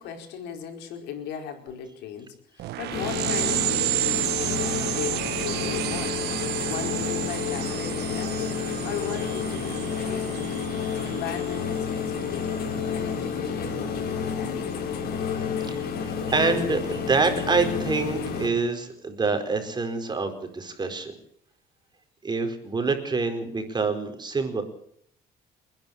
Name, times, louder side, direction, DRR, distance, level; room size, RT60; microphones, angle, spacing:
voice 1, 0.0-12.6 12.9-14.8, left 8 dB, 85° left, 4 dB, 4.8 m, -38 dB
sound 1, 2.6-12.7, right 15 dB, 80° right, 1.1 m, -31 dB
sound 2, 2.9-18.5, left 6 dB, 65° left, 4.8 m, -30 dB
voice 2, 15.6-21.2 22.2-24.6, right 4 dB, 25° right, 7 dB, 4.7 m, -26 dB
29.0 x 10.5 x 8.9 m, 0.66 s
cardioid pair, 110°, 17 cm